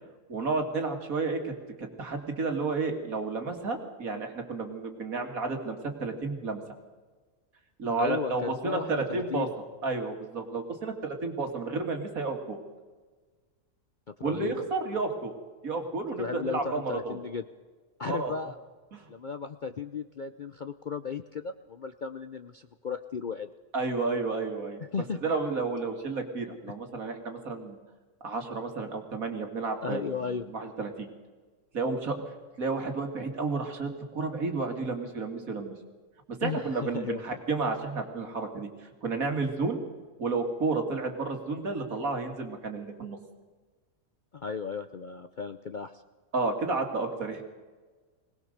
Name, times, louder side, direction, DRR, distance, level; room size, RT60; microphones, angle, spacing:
voice 1, 0.3-1.5 1.8-6.6 7.8-9.5 9.8-12.6 14.2-15.3 15.6-17.2 18.1-18.3 18.9-19.0 23.7-24.8 25.2-27.8 28.2-31.1 31.7-32.2 32.6-35.7 36.4-38.7 39.0-39.8 40.2-43.2 46.3-47.4, right 3 dB, 70° right, 5 dB, 2.6 m, -31 dB
voice 2, 8.0-9.5 14.2-14.7 16.2-17.4 18.0-18.5 19.1-23.5 24.9-25.3 26.7-26.8 29.8-30.5 36.4-37.4 44.3-45.9, left 5 dB, 45° left, 9 dB, 0.6 m, -35 dB
21.5 x 19.0 x 6.6 m, 1.4 s
omnidirectional pair, 1.5 m